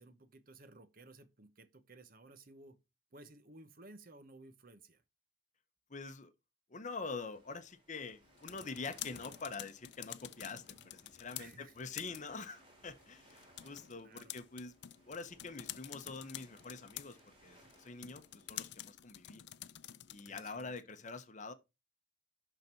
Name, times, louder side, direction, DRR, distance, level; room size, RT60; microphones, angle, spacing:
voice 1, 0.0-2.8 3.1-5.0 11.4-11.7 13.9-14.3 20.2-20.7, right 2 dB, 50° right, 1.1 m, -57 dB
voice 2, 5.9-6.3 6.7-14.7 15.1-19.4 20.1-21.5, left 4 dB, 45° left, 0.9 m, -45 dB
sound 1, 7.3-18.9, right 1 dB, 30° right, 2.6 m, -65 dB
sound 2, 8.2-20.7, left 13 dB, 65° left, 0.5 m, -50 dB
11.0 x 4.0 x 4.5 m
head